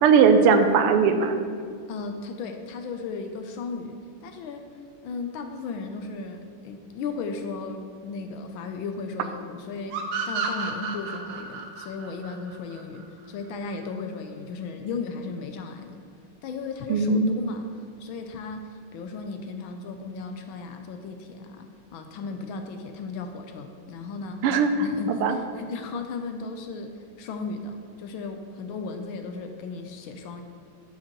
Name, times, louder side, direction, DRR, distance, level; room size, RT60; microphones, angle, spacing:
voice 1, 0.0-1.4 16.9-17.4 24.4-24.7 25.1-25.4, right 5 dB, 85° right, 8 dB, 1.5 m, -19 dB
voice 2, 1.9-4.7 5.0-10.0 10.3-16.0 16.4-24.5 24.8-30.4, left 4 dB, 75° left, 6 dB, 1.3 m, -36 dB
sound 1, 9.9-13.3, right 5 dB, 65° right, 1.4 m, -32 dB
8.5 x 7.3 x 3.0 m, 2.2 s
omnidirectional pair, 2.4 m